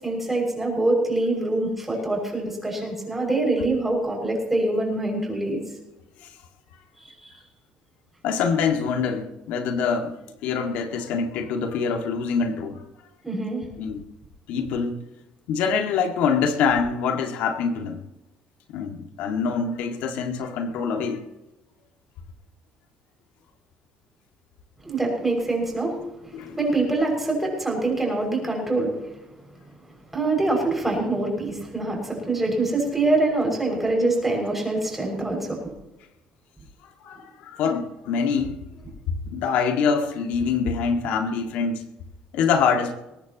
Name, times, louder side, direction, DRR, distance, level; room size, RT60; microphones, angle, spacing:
voice 1, 0.0-5.6 13.2-13.6 24.8-25.9 26.2-28.9 30.1-35.6, right 2 dB, 10° right, 0 dB, 6.3 m, -24 dB
voice 2, 8.2-12.8 13.8-14.0 14.5-15.0 15.5-18.0 18.7-21.2 26.3-26.6 37.0-38.6 39.3-41.8 42.3-42.9, left 6 dB, 80° left, 4 dB, 2.0 m, -25 dB
22.0 x 18.0 x 3.0 m, 0.95 s
cardioid pair, 150°, 3 cm